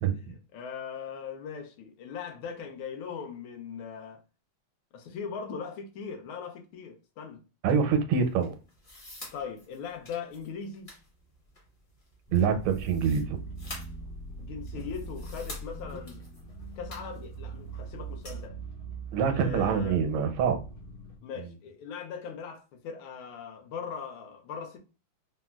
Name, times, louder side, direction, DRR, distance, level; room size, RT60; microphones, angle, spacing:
voice 1, 0.2-4.2 4.9-7.4 9.3-10.9 14.4-16.2 16.8-18.6 19.3-20.0 21.2-24.8, left 6 dB, 80° left, 1.5 m, -40 dB
voice 2, 7.6-8.5 12.3-13.4 19.1-20.6, right 6 dB, 80° right, 1.4 m, -25 dB
sound 1, 8.2-18.4, left 1 dB, 40° left, 0.8 m, -49 dB
sound 2, 12.3-21.2, right 4 dB, 55° left, 1.2 m, -41 dB
3.9 x 2.1 x 2.2 m
omnidirectional pair, 2.3 m